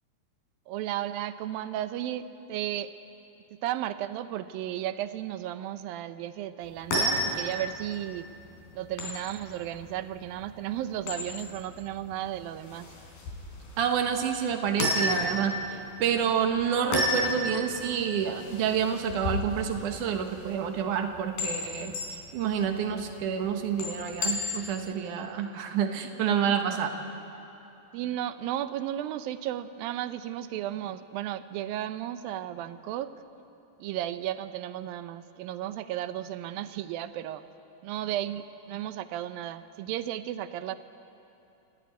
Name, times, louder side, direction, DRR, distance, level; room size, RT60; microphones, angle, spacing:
voice 1, 0.7-2.9 3.6-8.3 8.7-12.9 26.5-26.6 27.9-33.1 33.8-37.4 37.8-40.8, right 12 dB, 80° right, 12 dB, 2.5 m, -34 dB
sound 1, 6.6-24.9, left 1 dB, 90° left, 5.5 m, -34 dB
voice 2, 13.8-15.6 16.0-21.9 22.3-26.9, right 8 dB, 65° right, 5 dB, 2.7 m, -28 dB
29.0 x 14.5 x 9.3 m, 2.8 s
omnidirectional pair, 4.1 m